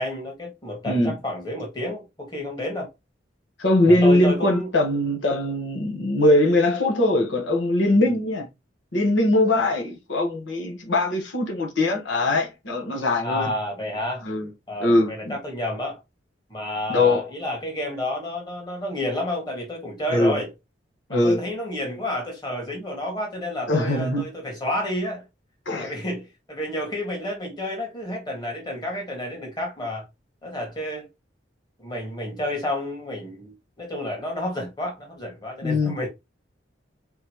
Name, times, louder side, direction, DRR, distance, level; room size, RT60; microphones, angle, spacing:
voice 1, 0.0-2.9 3.8-4.7 8.0-8.2 9.5-9.8 13.2-14.2 14.7-16.0 16.5-20.5 21.1-25.2 25.8-30.0 30.4-31.1 31.8-36.1, left 1 dB, 20° left, 1.9 m, -30 dB
voice 2, 0.9-1.2 3.6-8.5 8.9-13.5 14.2-14.5 14.8-15.4 16.9-17.3 20.1-20.4 21.1-21.4 23.7-24.3 25.6-25.9 35.6-36.0, left 1 dB, 90° left, 1.4 m, -21 dB
4.1 x 3.7 x 3.0 m
head